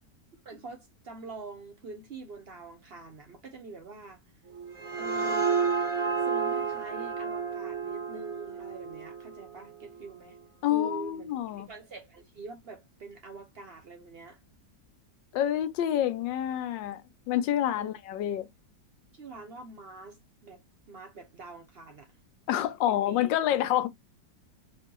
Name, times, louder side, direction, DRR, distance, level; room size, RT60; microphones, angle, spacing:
voice 1, 0.4-4.2 5.0-5.6 6.2-10.4 10.7-11.3 11.5-14.4 17.8-17.9 19.1-20.6 20.9-22.1 22.9-23.2, right 3 dB, 60° right, 0.6 m, -45 dB
sound 1, 4.5-10.0, right 5 dB, 25° right, 0.8 m, -31 dB
voice 2, 10.6-11.7 15.3-17.0 17.3-18.5 22.5-23.9, left 11 dB, 80° left, 1.3 m, -28 dB
3.2 x 2.8 x 3.7 m
omnidirectional pair, 2.0 m